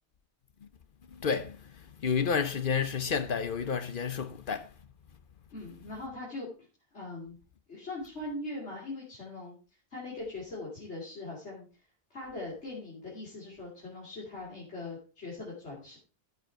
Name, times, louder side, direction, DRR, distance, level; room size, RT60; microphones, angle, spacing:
voice 1, 1.1-4.7, left 6 dB, 55° left, 0.9 m, -31 dB
voice 2, 5.5-6.5 6.9-7.4 7.7-9.6 9.9-11.7 12.1-16.0, left 2 dB, 80° left, 3.5 m, -41 dB
13.5 x 5.2 x 4.6 m
omnidirectional pair, 1.1 m